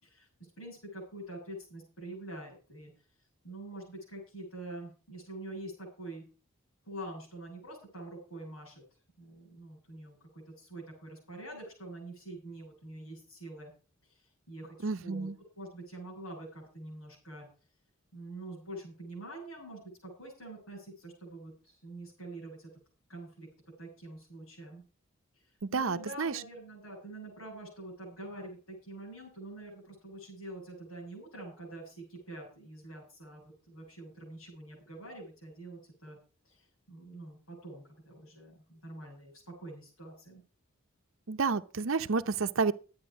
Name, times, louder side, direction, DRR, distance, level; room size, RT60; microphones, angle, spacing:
voice 1, 0.0-2.9 3.4-6.2 6.9-8.8 9.2-13.7 14.0-15.3 15.5-17.5 18.1-22.7 23.1-23.5 23.8-24.8 25.3-36.2 36.4-40.4, right 1 dB, 85° left, 6.9 m, -46 dB
voice 2, 14.8-15.4 25.6-26.3 41.3-42.7, right 4 dB, 65° right, 0.7 m, -30 dB
12.0 x 8.8 x 6.2 m
head